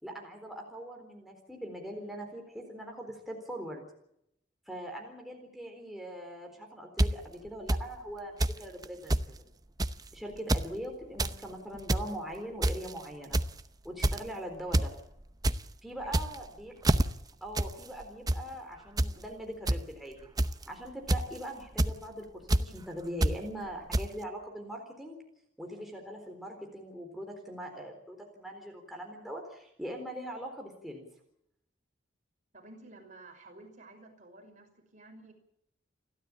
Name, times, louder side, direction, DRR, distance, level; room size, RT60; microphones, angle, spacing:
voice 1, 0.0-3.8 4.7-9.5 10.1-13.4 13.8-14.9 15.8-17.0 17.4-20.2 20.7-25.2 25.6-31.1, equal, ahead, 1 dB, 4.0 m, -41 dB
sound 1, 7.0-7.1 7.7-7.8 8.4-8.6 8.8-8.9 9.1-9.3 9.8-10.0 10.4-10.7 11.0-11.3 11.7-12.1 12.6-12.9 13.3-13.6 14.0-14.3 14.7-14.9 15.2-15.6 16.0-16.5 16.8-17.0 17.5-17.7 18.0-18.4 19.0-19.1 19.7-19.8 20.4-20.6 21.1-21.4 21.8-21.9 22.5-22.6 23.2-23.3 23.9-24.0, right 1 dB, 20° right, 0.8 m, -26 dB
voice 2, 16.0-16.4 32.5-35.3, right 2 dB, 40° right, 3 dB, 5.8 m, -52 dB
29.5 x 12.5 x 8.6 m, 0.77 s
head